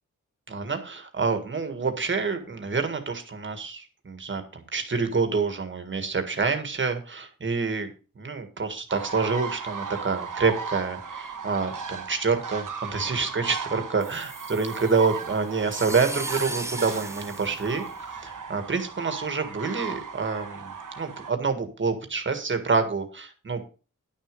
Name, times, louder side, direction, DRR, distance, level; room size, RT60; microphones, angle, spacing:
voice 1, 0.5-7.9 8.1-17.8 18.2-23.6, right 4 dB, 40° right, 7 dB, 1.8 m, -27 dB
sound 1, 8.9-21.3, right 6 dB, 85° right, 1.3 m, -36 dB
sound 2, 14.0-18.4, right 2 dB, 10° right, 0.7 m, -37 dB
11.0 x 6.6 x 5.2 m, 0.34 s
wide cardioid pair, 165°, 31 cm